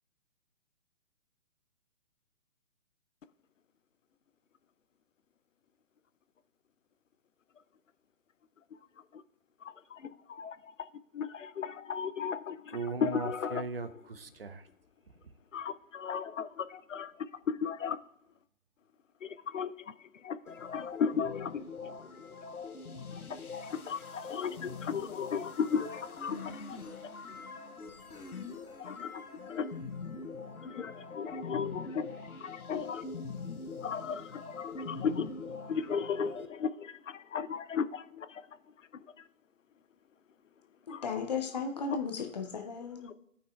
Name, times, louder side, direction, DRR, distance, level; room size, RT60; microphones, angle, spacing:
voice 1, 9.6-10.9 11.1-13.6 15.5-18.0 19.2-19.9 20.2-22.1 23.1-26.8 28.8-29.7 30.6-32.1 32.4-33.0 33.8-35.4 35.7-38.4 38.9-39.2 40.9-41.1 43.1-43.2, left 6 dB, 60° left, 0.5 m, -36 dB
voice 2, 12.7-14.7, right 4 dB, 45° right, 0.6 m, -38 dB
sound 1, 20.5-36.5, left 4 dB, 85° left, 0.9 m, -43 dB
voice 3, 40.9-43.1, left 5 dB, 30° left, 0.8 m, -35 dB
16.5 x 5.5 x 2.3 m
figure-of-eight pair, 140°, 42 cm